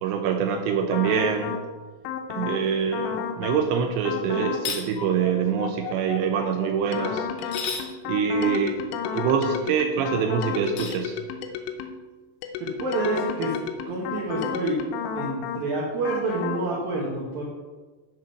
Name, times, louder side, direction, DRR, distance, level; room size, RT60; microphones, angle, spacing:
voice 1, 0.0-1.6 2.3-7.3 8.1-8.8 9.1-11.2, right 6 dB, 90° right, 4 dB, 2.5 m, -25 dB
sound 1, 0.9-1.6 2.0-2.6 2.9-3.6 4.0-4.6 5.0-12.0 12.4-15.6 16.0-16.6, left 7 dB, 80° left, 3.2 m, -32 dB
sound 2, 4.5-4.9 7.4-7.9 10.6-11.0, left 5 dB, 65° left, 2.6 m, -32 dB
voice 2, 12.6-13.6 13.9-14.8 15.1-17.4, right 2 dB, 65° right, -4 dB, 2.5 m, -28 dB
12.5 x 4.9 x 5.8 m, 1.3 s
omnidirectional pair, 5.8 m